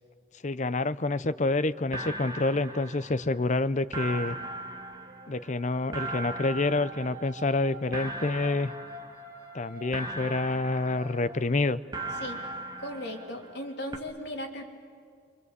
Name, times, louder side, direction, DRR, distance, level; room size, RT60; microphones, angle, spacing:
voice 1, 0.4-4.4 5.3-8.7 9.5-11.8, left 2 dB, 40° left, 15 dB, 0.6 m, -28 dB
sound 1, 1.0-2.7 4.6-12.0, right 1 dB, 50° right, 3.7 m, -48 dB
sound 2, 1.5-1.6 1.9-3.6 3.9-7.7 7.9-9.6 9.9-11.6 11.9-13.7 13.9-14.0, right 2 dB, 20° right, 1.4 m, -39 dB
voice 2, 12.8-14.6, left 1 dB, 60° left, 1 dB, 3.2 m, -37 dB
25.5 x 25.5 x 8.2 m, 2.1 s
head